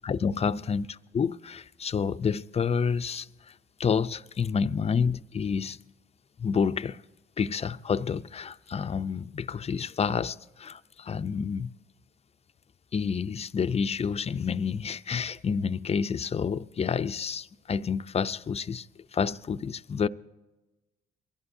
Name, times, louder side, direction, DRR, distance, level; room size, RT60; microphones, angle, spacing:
voice 1, 0.0-0.9 1.1-3.5 3.8-5.8 6.4-7.0 7.4-11.7 12.9-18.9 19.1-20.1, left 6 dB, 30° left, 0.5 m, -29 dB
23.5 x 15.5 x 2.7 m
cardioid pair, 90°, 20 cm